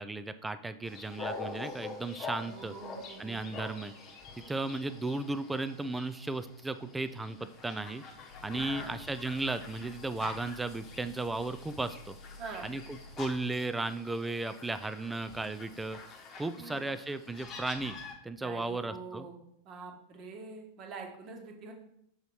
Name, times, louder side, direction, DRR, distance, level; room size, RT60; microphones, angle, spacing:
voice 1, 0.0-2.7 3.2-3.9 4.4-8.0 8.4-12.1 12.6-16.0 16.4-18.0 18.2-19.3, right 2 dB, 10° right, 12 dB, 0.4 m, -35 dB
sound 1, 0.8-18.1, left 4 dB, 30° left, 1.1 m, -46 dB
voice 2, 2.4-3.5 8.4-9.0 12.4-12.7 16.6-16.9 18.4-19.4 19.6-21.7, right 4 dB, 35° right, 2 dB, 1.2 m, -45 dB
sound 2, 8.3-13.5, left 2 dB, 55° left, 0.7 m, -52 dB
6.4 x 4.0 x 4.5 m, 0.74 s
figure-of-eight pair, 90°, 0 cm